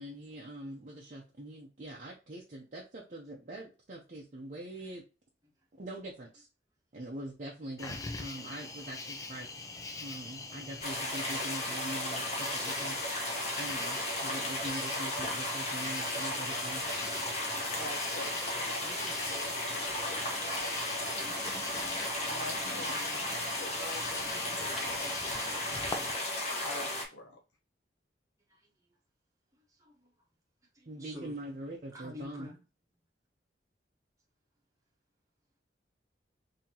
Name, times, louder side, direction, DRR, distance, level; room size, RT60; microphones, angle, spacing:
voice 1, 0.0-5.0 5.7-6.5 6.9-9.5 10.0-13.0 13.6-16.8 30.9-32.5, right 1 dB, 45° right, 0.7 m, -43 dB
Cricket, 7.8-26.1, left 3 dB, 20° left, 0.4 m, -43 dB
sound 1, 10.8-27.0, left 1 dB, 35° left, 1.1 m, -35 dB
voice 2, 17.7-18.8 19.3-21.4 22.3-25.9 26.6-27.4, left 1 dB, 80° left, 1.0 m, -46 dB
voice 3, 18.7-19.2 25.2-25.6 28.5-28.7 29.7-30.1 30.7-31.4 31.9-32.6, left 2 dB, 20° right, 1.0 m, -50 dB
3.9 x 2.8 x 2.8 m
head